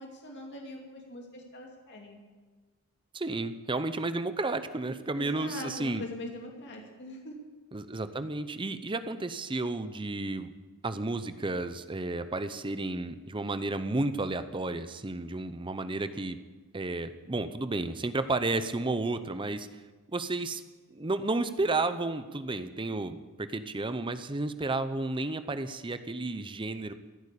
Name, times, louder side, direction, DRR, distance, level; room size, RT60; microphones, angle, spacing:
voice 1, 0.0-2.2 5.2-7.4, left 1 dB, 55° left, 0 dB, 2.5 m, -42 dB
voice 2, 3.1-6.0 7.7-10.5 10.8-16.4 16.7-19.7 20.1-20.6 20.9-26.9, right 2 dB, 20° right, 11 dB, 0.7 m, -32 dB
16.0 x 8.9 x 8.4 m, 1.3 s
head